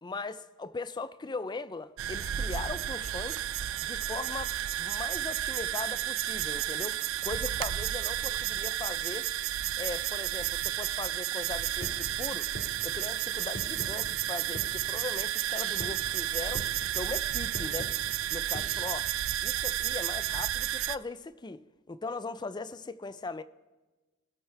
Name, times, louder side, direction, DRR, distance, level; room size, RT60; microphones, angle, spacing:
voice 1, 0.0-3.4 3.8-9.3 9.8-12.5 12.8-17.9 18.3-19.1 19.4-23.4, left 3 dB, 20° left, 0.4 m, -39 dB
sound 1, 2.0-21.0, right 12 dB, 65° right, 0.4 m, -32 dB
sound 2, 11.8-19.8, left 1 dB, 55° left, 2.1 m, -43 dB
22.0 x 9.0 x 3.4 m
head